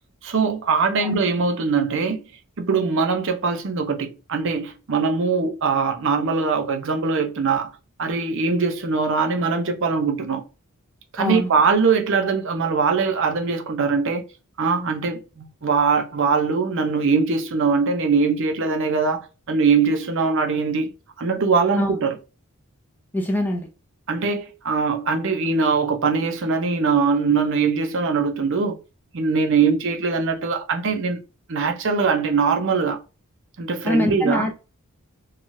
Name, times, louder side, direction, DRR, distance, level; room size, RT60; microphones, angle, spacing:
voice 1, 0.2-2.2 2.6-7.7 8.0-10.4 11.1-14.2 14.6-20.9 21.2-22.2 24.1-28.7 29.1-31.2 31.5-33.0 33.6-34.5, right 4 dB, 60° right, 0.6 m, -22 dB
voice 2, 11.2-11.5 21.8-22.0 23.1-23.7 33.8-34.5, left 1 dB, 10° left, 0.5 m, -23 dB
3.1 x 2.3 x 2.6 m
head